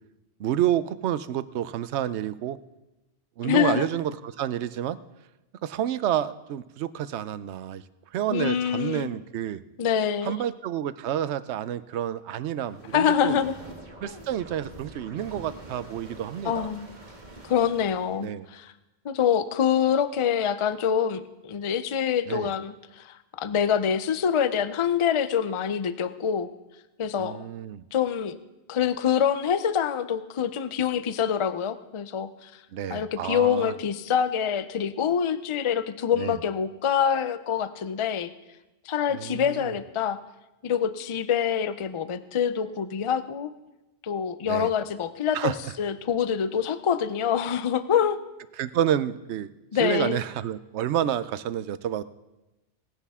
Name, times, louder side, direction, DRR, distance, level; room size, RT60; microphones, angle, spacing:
voice 1, 0.4-2.6 3.4-5.0 5.6-7.8 8.1-9.6 10.2-13.4 14.0-16.7 18.2-18.5 22.3-22.5 27.2-27.8 32.7-33.7 36.1-36.4 39.1-39.7 44.4-44.7 45.3-45.6 48.6-49.5 49.8-52.0, right 11 dB, 85° right, 15 dB, 0.9 m, -29 dB
voice 2, 3.4-3.9 8.3-9.1 9.8-10.4 12.9-13.6 14.0-14.2 16.4-16.9 17.4-18.7 19.0-26.5 27.0-27.4 27.9-28.4 28.7-32.5 32.9-38.3 38.9-40.2 40.6-43.5 44.0-48.2 49.7-50.2, left 8 dB, 40° left, 13 dB, 0.4 m, -25 dB
sound 1, 12.6-18.3, right 2 dB, 45° right, 1.5 m, -45 dB
19.0 x 9.8 x 3.6 m, 1.0 s
omnidirectional pair, 1.1 m